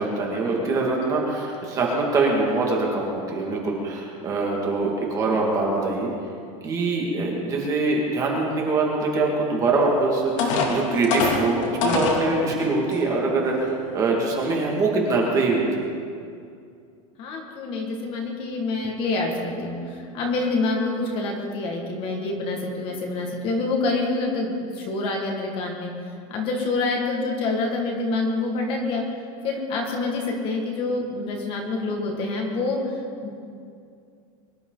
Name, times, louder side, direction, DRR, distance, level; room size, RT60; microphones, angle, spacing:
voice 1, 0.0-6.1 6.6-15.9, right 3 dB, 20° right, -2 dB, 2.2 m, -23 dB
sound 1, 9.8-9.9 10.4-12.2 12.9-13.0 13.5-13.7, left 4 dB, 60° left, 2.8 m, -23 dB
voice 2, 17.2-25.9 26.3-29.0 29.4-32.8 33.2-33.3, left 3 dB, 30° left, 1 dB, 1.9 m, -27 dB
23.5 x 12.0 x 4.0 m, 2.4 s
supercardioid pair, 175°, 18 cm